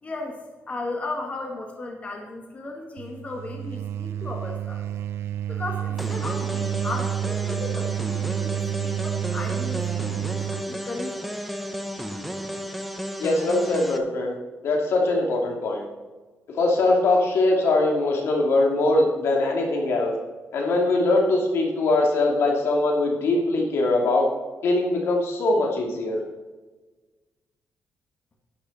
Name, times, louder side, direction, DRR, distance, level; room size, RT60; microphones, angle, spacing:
voice 1, 0.0-4.9 5.5-11.3, left 2 dB, 30° left, 1 dB, 1.8 m, -35 dB
sound 1, 3.0-10.7, right 11 dB, 80° right, 0.5 m, -29 dB
sound 2, 6.0-14.0, equal, ahead, 1.0 m, -33 dB
voice 2, 13.2-14.3 14.6-15.8 16.6-20.1 20.5-24.3 24.6-26.2, left 2 dB, 75° left, 0 dB, 2.7 m, -22 dB
12.0 x 9.8 x 4.3 m, 1.3 s
cardioid pair, 115°, 4 cm